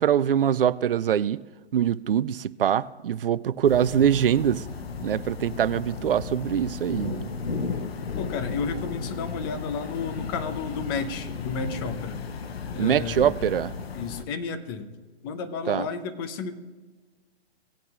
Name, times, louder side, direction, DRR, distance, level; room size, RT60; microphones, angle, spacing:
voice 1, 0.0-1.4 1.7-4.6 5.0-7.3 12.8-13.7 15.7-15.9, right 9 dB, 60° right, 0.4 m, -23 dB
sound 1, 3.6-14.3, left 5 dB, 65° left, 0.9 m, -34 dB
voice 2, 8.1-12.2 12.7-13.3 13.9-14.9 15.2-16.6, left 5 dB, 20° left, 0.7 m, -32 dB
18.0 x 9.2 x 2.5 m
figure-of-eight pair, 135°, 33 cm